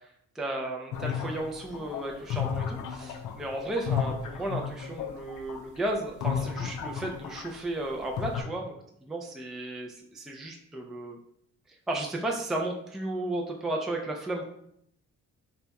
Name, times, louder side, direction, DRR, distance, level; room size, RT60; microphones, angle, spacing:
voice 1, 0.4-8.7 9.1-11.2 11.9-14.4, right 1 dB, ahead, 0 dB, 0.4 m, -34 dB
sound 1, 0.9-7.6 7.9-8.4, left 7 dB, 85° left, 0.5 m, -33 dB
3.2 x 2.3 x 3.9 m, 0.74 s
cardioid pair, 90°, 30 cm